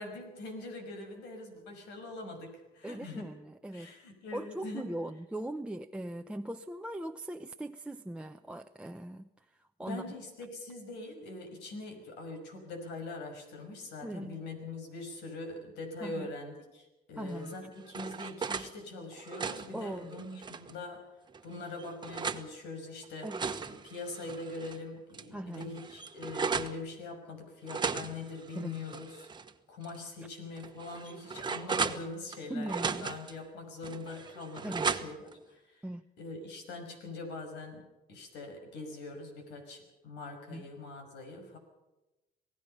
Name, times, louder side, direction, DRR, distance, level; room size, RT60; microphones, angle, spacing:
voice 1, 0.0-3.3 3.7-4.8 9.9-21.1 21.4-23.3 23.8-29.3 29.7-35.9 36.2-41.6, left 2 dB, 90° left, 5 dB, 6.0 m, -43 dB
voice 2, 2.8-3.9 4.3-10.0 14.0-14.3 16.0-16.3 17.2-17.5 19.7-20.1 23.2-23.4 25.3-25.7 28.5-28.8 32.5-33.1 34.6-34.9 35.8-36.0 40.5-40.7, right 1 dB, 5° right, 4 dB, 0.7 m, -40 dB
sound 1, 17.4-18.7 19.1-20.8 21.3-22.5 23.0-24.8 25.1-25.2 25.5-26.8 27.7-29.5 29.8-30.0 30.6-32.4 32.7-33.4 33.8-35.3, right 5 dB, 25° right, 1.3 m, -36 dB
27.0 x 18.5 x 5.6 m, 1.0 s
cardioid pair, 110°, 17 cm